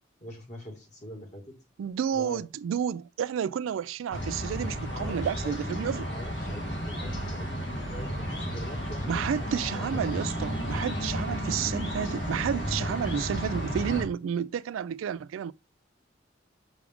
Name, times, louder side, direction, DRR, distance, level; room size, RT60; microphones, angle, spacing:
voice 1, 0.2-1.5 2.1-2.4 4.9-10.0, equal, 35° left, 2.0 m, -44 dB
voice 2, 1.8-6.1 9.1-15.5, right 8 dB, 90° right, 0.3 m, -31 dB
sound 1, 4.1-14.0, equal, 65° left, 2.3 m, -33 dB
6.2 x 4.8 x 3.5 m
head